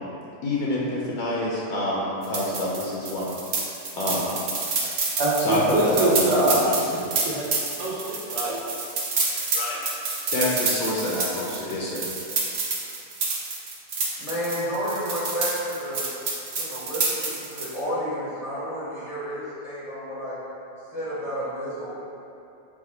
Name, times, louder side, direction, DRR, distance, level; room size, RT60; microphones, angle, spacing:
voice 1, 0.4-3.3 4.0-4.3 5.4-7.0 9.5-9.8 10.3-12.0, left 1 dB, 70° left, -5 dB, 1.1 m, -26 dB
sound 1, 2.2-17.8, right 3 dB, 60° right, 0.7 m, -28 dB
voice 2, 5.2-6.6 7.2-7.5 7.8-8.6, right 3 dB, 80° right, -5 dB, 1.3 m, -24 dB
voice 3, 14.2-16.1 16.6-20.4 20.9-21.9, equal, 35° left, -9 dB, 0.6 m, -31 dB
4.8 x 2.2 x 4.2 m, 2.6 s
omnidirectional pair, 1.7 m